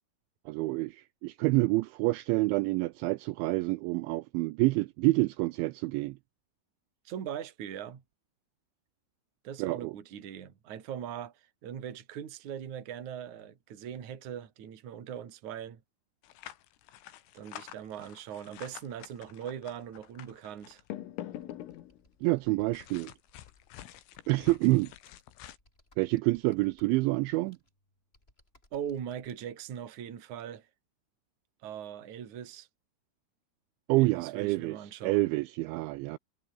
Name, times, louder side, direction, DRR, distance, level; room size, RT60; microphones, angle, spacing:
voice 1, 0.5-6.2 9.6-9.9 22.2-23.1 24.3-24.9 26.0-27.6 33.9-34.8 35.0-36.2, right 22 dB, 85° right, 2.6 m, -27 dB
voice 2, 7.1-8.0 9.4-15.8 17.3-20.8 28.7-30.7 31.6-32.7 34.0-35.3, right 9 dB, 45° right, 3.5 m, -40 dB
sound 1, 16.2-22.1 22.7-25.6, left 13 dB, 80° left, 4.4 m, -46 dB
Computer keyboard, 21.3-29.5, left 1 dB, 10° left, 6.4 m, -66 dB
omnidirectional pair, 5.9 m